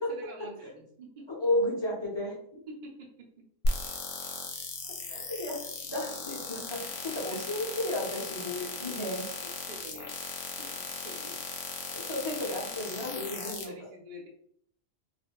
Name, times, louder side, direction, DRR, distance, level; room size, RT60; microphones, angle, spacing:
voice 1, 0.1-1.3 2.5-3.4 7.1-7.4 8.6-8.7 9.4-10.2 10.5-11.4 13.3-14.3, right 1 dB, 45° right, -4 dB, 0.6 m, -47 dB
voice 2, 1.3-2.3 5.1-9.2 11.8-13.9, left 1 dB, 25° left, -5 dB, 0.7 m, -33 dB
sound 1, 3.6-13.6, left 3 dB, 70° left, 1.0 m, -37 dB
2.6 x 2.5 x 2.9 m, 0.65 s
omnidirectional pair, 1.4 m